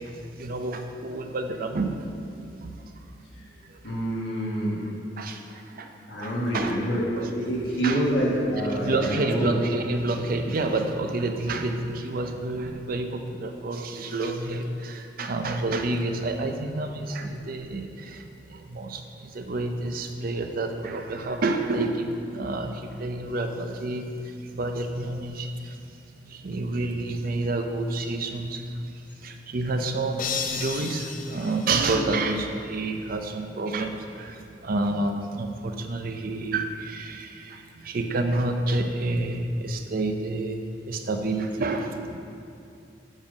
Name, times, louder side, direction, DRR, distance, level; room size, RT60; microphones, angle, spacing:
voice 1, 0.0-2.0 2.5-2.7 3.6-3.8 5.2-5.9 6.2-6.7 7.2-7.3 7.8-8.0 8.8-25.8 26.1-42.2, right 2 dB, 55° right, 5 dB, 0.6 m, -29 dB
voice 2, 3.8-4.8 6.1-9.5, equal, 85° left, -5 dB, 1.6 m, -26 dB
sound 1, 30.2-32.5, left 7 dB, 50° left, 0.5 m, -34 dB
7.2 x 5.4 x 5.2 m, 2.6 s
head